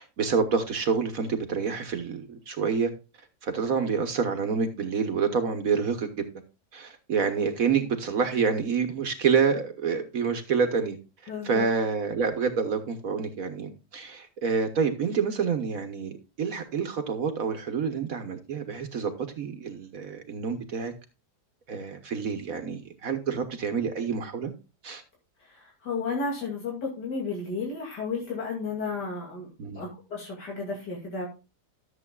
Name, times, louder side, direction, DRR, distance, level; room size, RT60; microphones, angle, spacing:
voice 1, 0.0-2.9 3.4-6.3 6.7-11.0 11.2-20.9 21.7-24.5 24.8-25.0 29.6-29.8, right 5 dB, 60° right, 8 dB, 1.5 m, -28 dB
voice 2, 11.3-11.7 25.5-29.5 29.7-31.3, left 4 dB, 90° left, -2 dB, 3.1 m, -33 dB
13.5 x 7.6 x 2.3 m, 0.30 s
omnidirectional pair, 1.7 m